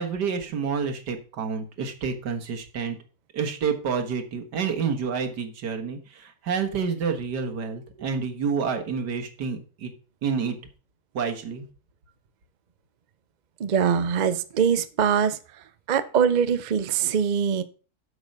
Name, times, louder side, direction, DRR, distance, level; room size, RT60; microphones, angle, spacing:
voice 1, 0.0-3.0 3.3-9.9 10.2-10.6 11.1-11.7, right 6 dB, 90° right, 5 dB, 2.0 m, -29 dB
voice 2, 13.6-15.4 15.9-17.6, right 7 dB, 70° right, 13 dB, 0.4 m, -23 dB
8.2 x 7.1 x 5.4 m, 0.38 s
omnidirectional pair, 1.7 m